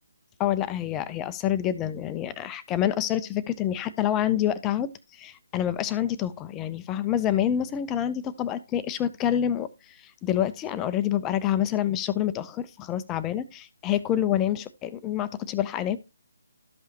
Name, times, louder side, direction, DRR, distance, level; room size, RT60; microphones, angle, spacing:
voice 1, 0.4-4.9 5.2-16.0, left 11 dB, 15° left, 0.5 m, -27 dB
12.5 x 5.5 x 2.9 m
figure-of-eight pair, 150°, 0 cm